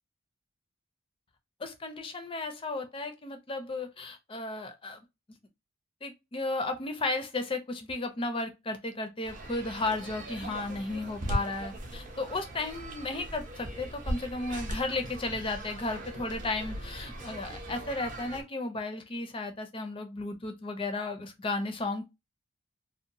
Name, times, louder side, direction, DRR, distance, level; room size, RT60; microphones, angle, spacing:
voice 1, 1.6-5.0 6.0-22.1, left 2 dB, 25° left, 0.4 m, -34 dB
sound 1, 9.2-18.4, right 1 dB, 40° right, 0.5 m, -39 dB
2.8 x 2.1 x 2.5 m
head